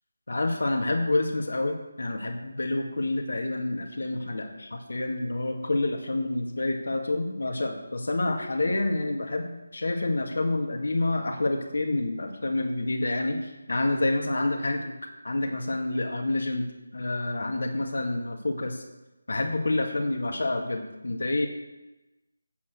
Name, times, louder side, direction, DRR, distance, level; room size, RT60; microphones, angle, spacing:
voice 1, 0.3-14.9 15.2-16.7 16.9-18.8 19.3-21.5, left 2 dB, 75° left, 3 dB, 2.0 m, -28 dB
8.3 x 6.6 x 7.9 m, 1.0 s
figure-of-eight pair, 170°, 0 cm